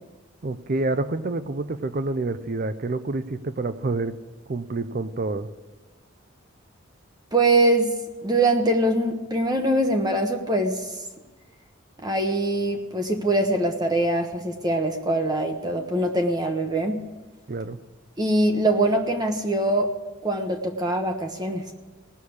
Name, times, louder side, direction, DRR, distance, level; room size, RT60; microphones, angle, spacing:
voice 1, 0.4-4.1 4.5-5.5 17.5-17.8, right 2 dB, 40° right, 12 dB, 0.5 m, -28 dB
voice 2, 7.3-7.9 8.2-10.9 12.0-17.0 18.2-19.9 20.2-21.7, right 1 dB, 20° right, 4 dB, 0.9 m, -23 dB
17.5 x 6.4 x 8.5 m, 1.2 s
head